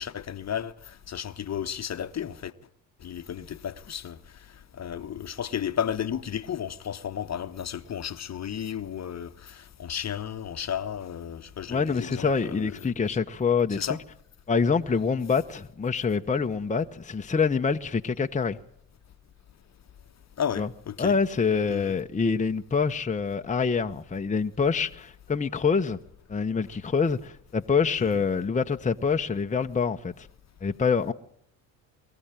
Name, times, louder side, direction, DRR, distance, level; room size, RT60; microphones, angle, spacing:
voice 1, 0.0-2.5 3.0-4.2 4.8-12.7 13.1-13.2 13.7-14.0 20.4-21.2 21.7-22.0, left 9 dB, 40° left, 1.1 m, -33 dB
voice 2, 11.7-13.9 14.5-18.6 20.6-20.7 21.0-26.0 26.3-30.3 30.6-31.1, left 5 dB, 20° left, 1.0 m, -26 dB
23.0 x 14.5 x 9.0 m
supercardioid pair, 70°, 40 cm